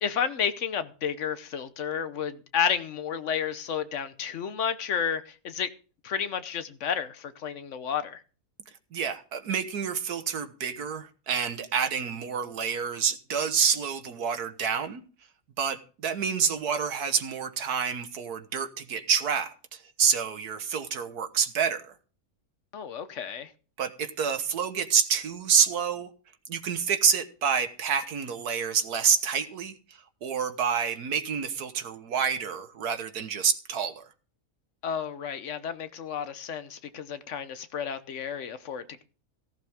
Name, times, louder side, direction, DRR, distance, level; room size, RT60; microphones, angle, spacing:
voice 1, 0.0-5.7 6.0-8.2 22.7-23.5 34.8-39.0, left 7 dB, 55° left, 1.1 m, -31 dB
voice 2, 8.9-15.0 15.6-21.9 23.8-26.1 26.5-34.0, right 7 dB, 80° right, 1.7 m, -28 dB
14.5 x 11.5 x 3.6 m
omnidirectional pair, 1.6 m